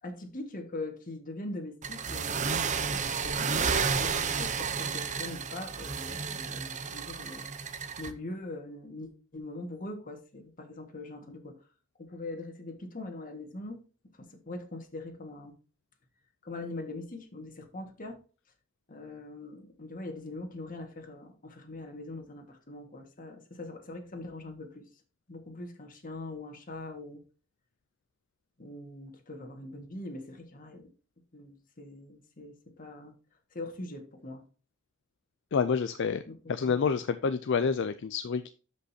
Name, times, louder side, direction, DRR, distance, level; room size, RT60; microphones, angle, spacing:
voice 1, 0.0-3.4 3.7-7.5 8.0-11.6 12.0-13.8 14.2-15.6 16.4-18.2 18.9-24.8 25.3-27.2 28.6-30.9 31.3-33.1 33.5-34.4 36.2-36.4 36.6-36.7, left 2 dB, 40° left, 4 dB, 1.7 m, -42 dB
sound 1, 1.8-8.1, right 5 dB, 35° right, 0.7 m, -31 dB
voice 2, 35.5-36.2 36.5-38.5, left 5 dB, 60° left, 11 dB, 0.4 m, -28 dB
12.5 x 5.3 x 2.8 m, 0.36 s
head